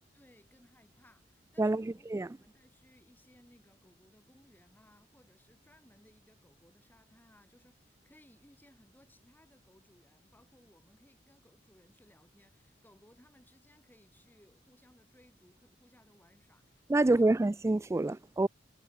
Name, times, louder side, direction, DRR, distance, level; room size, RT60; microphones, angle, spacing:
voice 1, 0.1-17.4, left 1 dB, 10° left, 4.9 m, -63 dB
voice 2, 1.6-2.3 16.9-18.5, right 2 dB, 15° right, 0.3 m, -27 dB
head